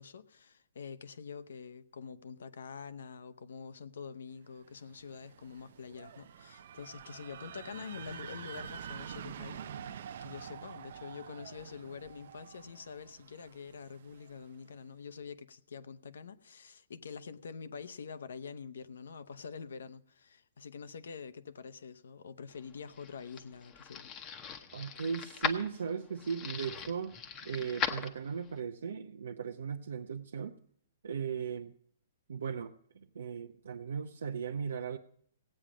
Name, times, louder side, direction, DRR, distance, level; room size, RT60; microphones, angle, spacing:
voice 1, 0.0-24.1, left 6 dB, 85° left, 0.8 m, -46 dB
sound 1, 4.7-14.5, right 8 dB, 60° right, 0.5 m, -47 dB
sound 2, 22.6-28.6, left 7 dB, 20° left, 0.9 m, -39 dB
voice 2, 24.7-27.2 27.4-30.6 31.0-31.7 32.3-35.0, right 6 dB, 90° right, 0.7 m, -37 dB
16.5 x 8.7 x 5.0 m
hypercardioid pair, 160°, 0 cm